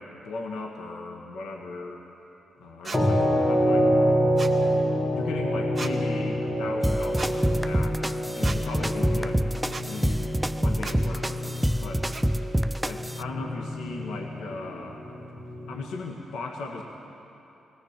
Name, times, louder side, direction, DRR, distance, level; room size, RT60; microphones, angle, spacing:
voice 1, 0.0-2.1 2.6-3.9 4.8-9.4 9.8-10.2 10.6-12.1 12.9-15.0 15.7-16.8, left 3 dB, 80° left, 1 dB, 1.7 m, -37 dB
sound 1, 2.8-3.0 4.4-4.6 5.7-5.9 7.1-7.3 8.4-8.6 9.7-9.9 10.8-11.0 12.1-12.2, right 3 dB, 25° right, 2.0 m, -36 dB
sound 2, 2.9-15.9, equal, 15° left, 2.4 m, -27 dB
sound 3, 6.8-13.2, equal, 10° right, 0.4 m, -27 dB
21.0 x 18.0 x 7.4 m, 2.9 s
supercardioid pair, 60°, 0 cm